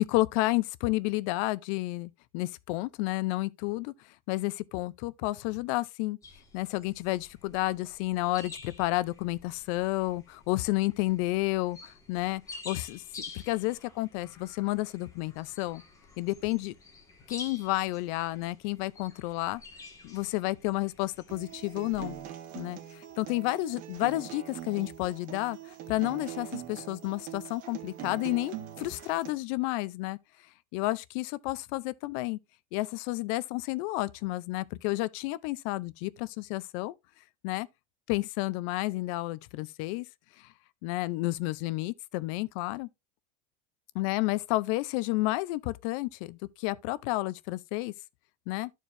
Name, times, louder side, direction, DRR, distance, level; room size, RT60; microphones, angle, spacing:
voice 1, 0.0-3.9 4.3-6.2 6.5-13.0 13.3-15.8 16.2-16.7 17.3-19.6 20.0-22.2 22.6-25.6 25.9-30.2 30.7-32.4 32.7-37.0 37.4-37.7 38.1-40.1 40.8-42.9 43.9-47.9 48.5-48.7, left 19 dB, 60° left, 0.5 m, -31 dB
sound 1, 6.2-22.2, left 4 dB, 15° left, 1.8 m, -49 dB
Acoustic guitar, 21.3-29.3, right 12 dB, 45° right, 1.4 m, -43 dB
13.0 x 4.6 x 2.6 m
supercardioid pair, 145°, 19 cm